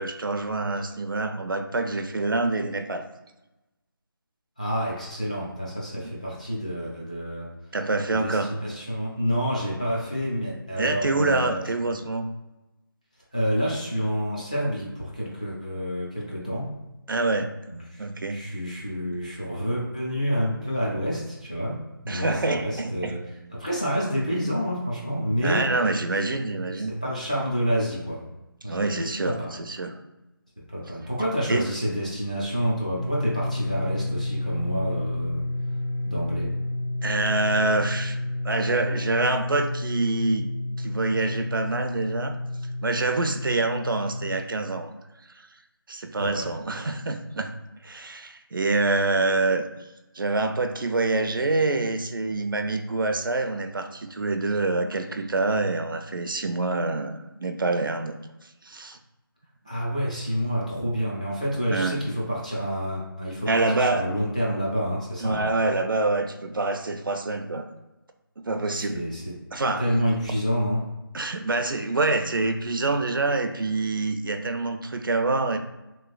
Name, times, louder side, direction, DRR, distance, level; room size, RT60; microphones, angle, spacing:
voice 1, 0.0-3.1 7.7-8.5 10.8-12.3 17.1-17.6 18.0-18.4 22.1-23.1 25.4-26.9 28.7-30.0 31.5-31.7 37.0-38.2 38.4-40.5 40.8-42.4 42.8-44.9 45.4-45.5 45.9-47.5 47.8-49.7 50.1-58.2 58.6-59.0 61.7-62.0 63.5-64.1 65.2-67.6 68.4-69.0 69.5-69.9 71.1-75.6, right 3 dB, 65° right, 6 dB, 0.4 m, -26 dB
voice 2, 4.6-7.5 8.1-11.6 13.3-16.7 17.7-21.8 22.0-23.2 23.5-25.7 26.7-28.2 28.6-29.5 30.7-35.5 36.0-36.5 46.2-46.5 59.6-65.4 68.7-69.4 69.8-70.8, equal, 20° left, -5 dB, 0.4 m, -28 dB
sound 1, 32.9-44.4, left 1 dB, 65° left, 1.4 m, -30 dB
3.1 x 3.0 x 2.3 m, 1.0 s
figure-of-eight pair, 175°, 12 cm